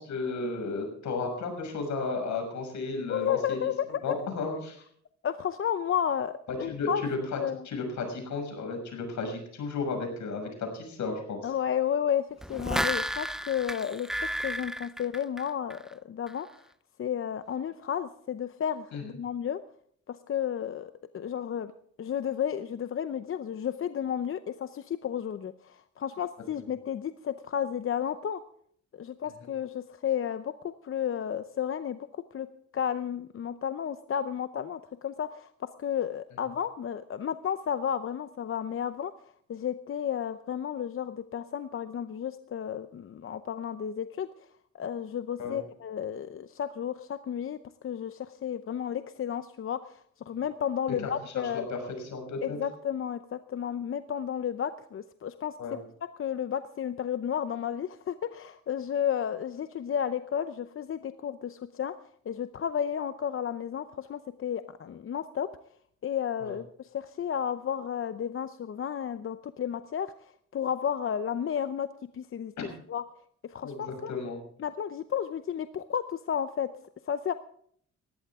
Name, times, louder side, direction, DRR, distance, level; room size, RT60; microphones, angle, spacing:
voice 1, 0.0-3.7 4.0-4.8 6.6-11.4 18.9-19.0 45.4-45.6 50.9-51.8 52.1-52.6 55.6-55.8 66.4-66.5 72.6-72.7 73.6-74.4, left 3 dB, 70° left, 4 dB, 6.3 m, -34 dB
voice 2, 3.1-4.2 5.2-7.0 7.4-7.6 11.4-16.5 17.0-19.6 20.1-21.7 22.0-28.4 28.9-32.5 32.7-35.5 35.8-44.5 44.7-51.7 52.4-55.5 56.2-62.0 62.3-65.5 66.0-71.9 72.1-72.5 72.9-73.0 73.4-74.1 74.6-76.7 77.1-77.3, left 9 dB, 45° left, 11 dB, 0.7 m, -32 dB
sound 1, 12.4-15.9 16.3-16.4, equal, ahead, 0.5 m, -33 dB
19.5 x 15.0 x 3.7 m, 0.63 s
cardioid pair, 90°, 30 cm